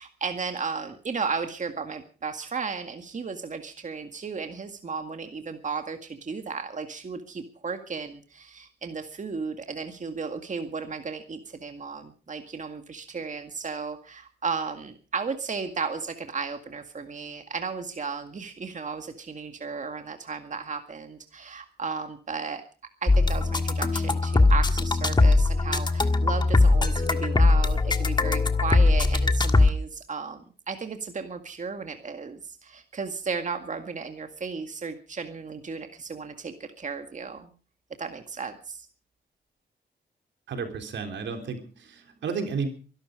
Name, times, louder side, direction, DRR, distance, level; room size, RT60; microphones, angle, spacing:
voice 1, 0.0-22.6 23.0-37.5 38.0-38.9, right 5 dB, 45° right, 6 dB, 2.0 m, -34 dB
sound 1, 23.1-29.7, left 3 dB, 25° left, 1.7 m, -21 dB
voice 2, 40.5-42.7, right 5 dB, 85° right, 5 dB, 3.5 m, -32 dB
23.0 x 12.5 x 5.0 m, 0.38 s
cardioid pair, 85°, 18 cm